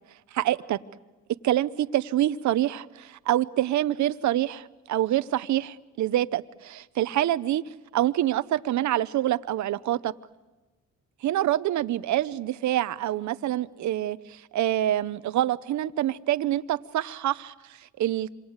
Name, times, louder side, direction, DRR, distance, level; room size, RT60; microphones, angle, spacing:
voice 1, 0.3-0.8 1.4-10.1 11.2-18.4, right 13 dB, 70° right, 15 dB, 0.9 m, -26 dB
27.0 x 25.5 x 8.1 m, 1.1 s
cardioid pair, 90°, 30 cm